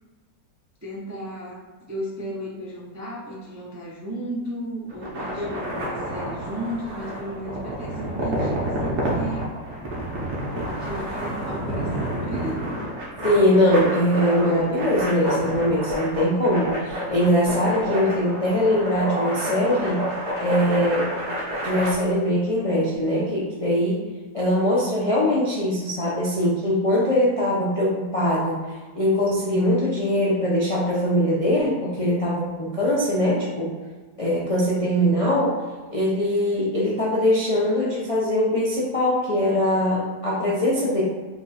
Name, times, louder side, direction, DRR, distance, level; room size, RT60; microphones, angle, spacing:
voice 1, 0.8-9.5 10.6-12.6, right 1 dB, 20° right, -6 dB, 0.4 m, -34 dB
sound 1, 4.9-21.9, equal, 50° right, 1.1 m, -29 dB
voice 2, 13.2-20.0 20.4-21.1 21.6-24.0 24.3-33.7 34.2-35.6 35.9-41.0, left 1 dB, 40° left, -7 dB, 0.4 m, -22 dB
4.4 x 2.3 x 4.1 m, 1.4 s
omnidirectional pair, 1.7 m